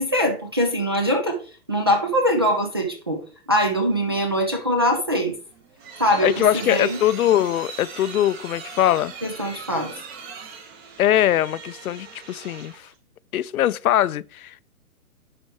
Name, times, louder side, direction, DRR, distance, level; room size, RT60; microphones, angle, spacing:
voice 1, 0.0-1.4 1.7-3.2 3.5-5.4 6.0-7.0 9.2-9.9, equal, 20° right, 0.3 m, -22 dB
sound 1, 5.4-12.9, right 5 dB, 45° right, 1.7 m, -40 dB
voice 2, 6.2-9.1 11.0-12.9 13.3-14.6, left 12 dB, 75° left, 0.5 m, -22 dB
9.8 x 4.4 x 3.5 m
hypercardioid pair, 135°, 44 cm